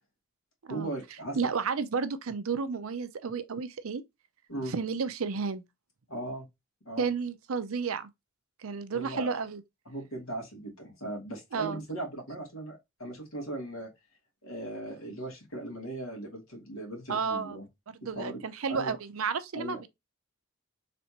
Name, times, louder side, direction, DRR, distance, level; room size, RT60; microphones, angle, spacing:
voice 1, 0.7-1.4 4.5-4.7 6.1-6.5 6.9-7.1 8.9-9.3 9.9-13.9 14.4-17.6 18.1-18.4 18.7-18.9 19.5-19.8, right 1 dB, 80° left, 2.3 m, -38 dB
voice 2, 1.4-4.0 4.7-5.6 7.0-8.1 8.6-9.6 11.5-11.8 17.1-17.6 18.0-19.9, right 5 dB, 85° right, 0.6 m, -32 dB
4.2 x 3.4 x 2.9 m
head